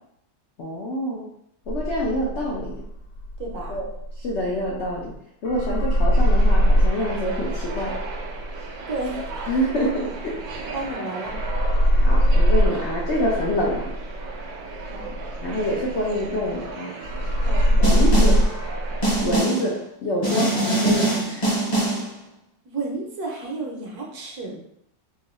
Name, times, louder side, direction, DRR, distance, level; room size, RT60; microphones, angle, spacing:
voice 1, 0.6-1.3 1.7-2.8 3.7-3.9 4.2-5.1 5.4-8.0 9.5-10.7 12.0-13.9 15.4-16.9 17.8-18.4 19.2-21.5, equal, 70° left, -4 dB, 0.6 m, -26 dB
sound 1, 1.7-5.1 5.4-10.9 11.2-16.7 17.0-19.4, equal, 90° left, 1.4 m, -22 dB
voice 2, 3.4-3.8 8.9-9.2 9.9-10.0 10.5-11.3 14.9-15.1 17.4-17.7 20.3-20.6 22.6-24.6, right 2 dB, 65° right, -1 dB, 1.2 m, -32 dB
sound 2, 6.1-19.3, right 4 dB, 85° right, 1.3 m, -37 dB
Snare drum, 17.8-18.5 19.0-19.7 20.2-22.1, right 2 dB, 35° left, 0.8 m, -23 dB
3.8 x 2.6 x 3.0 m, 0.74 s
omnidirectional pair, 1.9 m